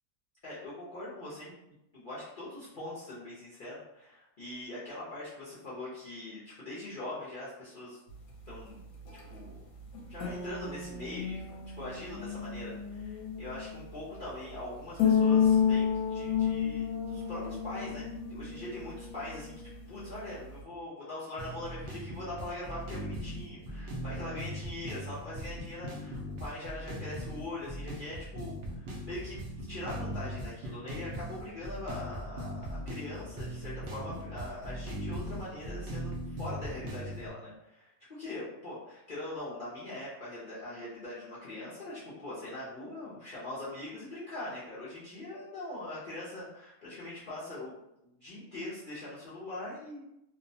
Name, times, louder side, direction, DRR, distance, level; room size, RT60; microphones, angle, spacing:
voice 1, 0.4-1.5 1.9-8.0 8.5-8.8 9.3-9.7 10.1-11.4 11.8-19.5 19.9-47.8 48.0-50.0, left 1 dB, 50° left, -10 dB, 0.6 m, -42 dB
sound 1, 8.1-20.6, left 7 dB, 80° left, 1.0 m, -32 dB
sound 2, 21.4-37.3, equal, 60° right, 0.6 m, -39 dB
2.6 x 2.1 x 2.6 m, 0.86 s
omnidirectional pair, 1.5 m